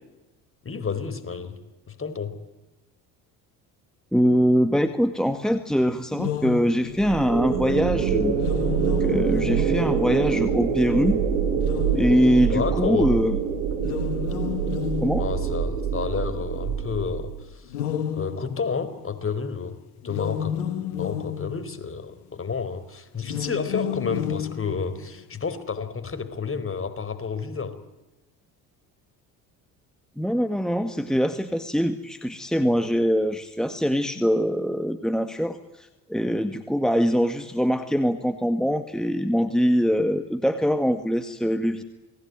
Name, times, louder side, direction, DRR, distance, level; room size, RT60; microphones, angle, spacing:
voice 1, 0.6-1.6 1.9-2.4 12.5-13.2 15.2-17.7 18.1-19.8 20.0-20.6 21.0-27.8, left 5 dB, 30° left, 10 dB, 4.6 m, -30 dB
voice 2, 4.1-8.4 9.0-11.2 12.0-13.4 15.0-15.2 30.2-41.8, equal, ahead, 8 dB, 2.0 m, -23 dB
sound 1, 6.1-7.2 8.3-10.3 11.5-12.6 13.8-15.8 17.7-19.1 20.0-22.0 23.2-25.2, left 10 dB, 85° left, 1.9 m, -31 dB
sound 2, 6.9-17.4, right 7 dB, 85° right, 5.2 m, -25 dB
29.0 x 20.0 x 9.6 m, 1.0 s
hypercardioid pair, 65°, 44 cm